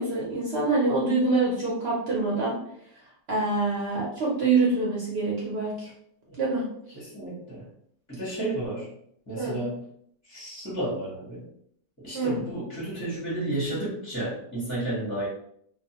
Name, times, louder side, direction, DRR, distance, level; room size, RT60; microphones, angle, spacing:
voice 1, 0.0-2.5 3.3-5.9 6.4-6.6 9.4-9.5 12.1-12.4, right 3 dB, 55° right, -5 dB, 0.7 m, -25 dB
voice 2, 6.9-7.7 8.1-8.9 9.3-9.8 10.3-11.4 12.0-15.3, right 1 dB, 15° left, -8 dB, 0.7 m, -32 dB
2.4 x 2.2 x 2.7 m, 0.69 s
omnidirectional pair, 1.6 m